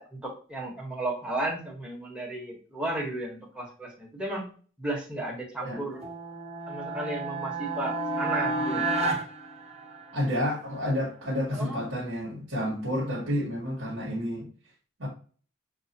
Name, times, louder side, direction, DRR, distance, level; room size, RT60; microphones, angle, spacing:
voice 1, 0.0-4.5 4.8-6.0 6.7-8.8 11.5-11.8, right 1 dB, 5° right, -2 dB, 1.2 m, -34 dB
sound 1, 5.9-10.3, right 3 dB, 35° right, 1.3 m, -31 dB
voice 2, 10.1-14.5 15.0-15.1, left 1 dB, 80° right, -5 dB, 1.4 m, -30 dB
6.2 x 2.5 x 2.8 m, 0.40 s
head